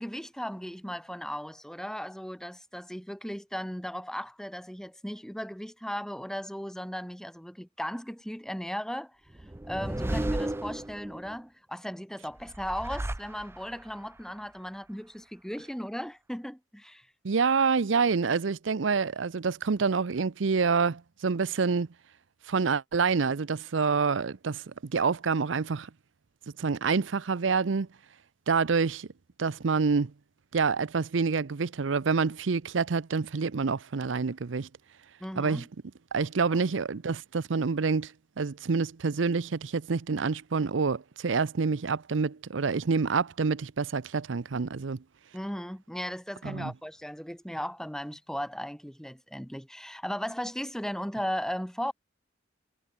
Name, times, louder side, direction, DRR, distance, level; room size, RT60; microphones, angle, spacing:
voice 1, 0.0-9.2 9.7-17.1 35.2-35.7 36.5-36.6 45.3-51.9, equal, 5° left, 4.5 m, -36 dB
sound 1, 9.3-11.4 12.4-13.9, right 1 dB, 15° right, 0.4 m, -33 dB
voice 2, 17.2-21.9 22.5-25.9 26.6-27.9 28.5-29.1 29.4-30.1 30.5-34.7 35.4-35.6 36.1-38.1 38.4-45.0 46.4-46.7, right 5 dB, 80° right, 0.6 m, -27 dB
head